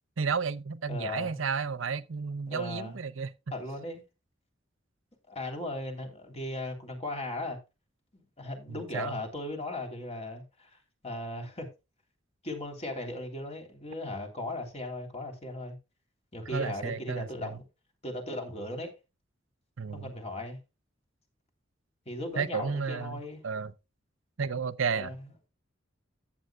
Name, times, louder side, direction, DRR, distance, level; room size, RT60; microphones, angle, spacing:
voice 1, 0.2-3.3 8.7-9.2 16.5-17.6 19.8-20.1 22.4-23.7 24.4-25.2, right 5 dB, 85° right, 0.7 m, -32 dB
voice 2, 0.9-1.4 2.5-3.0 3.5-4.0 5.3-7.6 8.1-10.7 11.0-11.7 12.4-15.8 16.3-17.6 18.0-18.9 19.9-20.6 22.0-23.4 24.9-25.2, left 2 dB, 35° left, 3.2 m, -37 dB
14.0 x 9.1 x 2.3 m
head